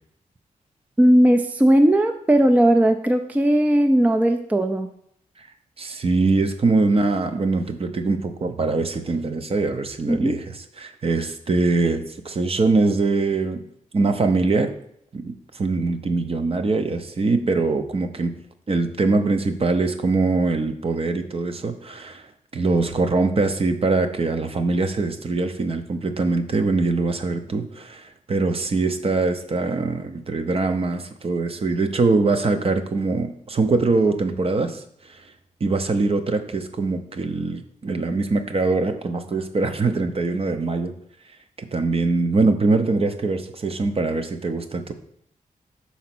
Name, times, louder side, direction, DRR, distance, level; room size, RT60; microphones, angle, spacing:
voice 1, 1.0-4.9 10.1-10.4, right 1 dB, 10° right, 6 dB, 0.4 m, -17 dB
voice 2, 5.8-10.4 10.8-13.6 13.9-14.7 15.1-18.3 18.7-22.2 22.5-34.8 35.6-40.9 41.6-44.9, right 3 dB, 45° right, 7 dB, 0.7 m, -22 dB
5.9 x 4.2 x 5.9 m, 0.69 s
wide cardioid pair, 115°, 14 cm